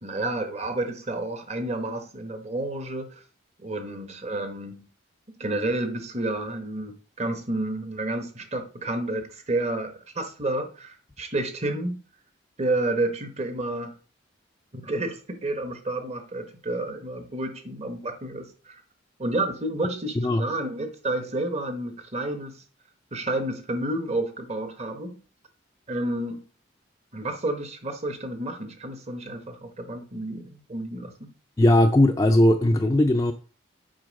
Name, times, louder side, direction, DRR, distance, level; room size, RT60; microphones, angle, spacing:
voice 1, 0.0-3.2 3.6-4.8 5.3-12.0 12.6-14.0 14.7-18.8 19.2-22.6 23.1-25.2 25.9-26.5 27.1-31.3, right 2 dB, 30° right, 1.0 m, -30 dB
voice 2, 31.6-33.3, left 1 dB, 15° left, 0.3 m, -19 dB
7.7 x 4.3 x 5.2 m
head